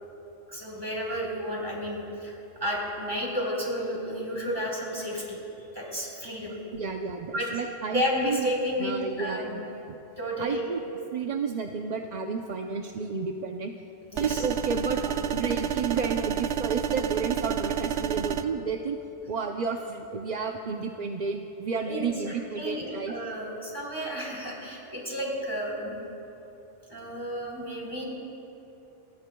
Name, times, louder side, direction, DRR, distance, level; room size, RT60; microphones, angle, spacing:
voice 1, 0.5-5.4 5.7-6.6 7.3-7.5 7.9-9.6 10.2-10.7 14.1-14.4 15.1-15.2 21.8-25.9 26.9-28.0, equal, 20° right, -4 dB, 3.8 m, -32 dB
voice 2, 6.7-8.4 8.8-9.9 10.4-10.8 11.1-13.7 14.2-15.0 15.3-19.0 19.3-23.1, right 5 dB, 45° right, 3 dB, 0.6 m, -31 dB
sound 1, 14.2-18.4, right 8 dB, 75° right, 0.9 m, -29 dB
26.0 x 20.0 x 2.3 m, 2.9 s
omnidirectional pair, 1.2 m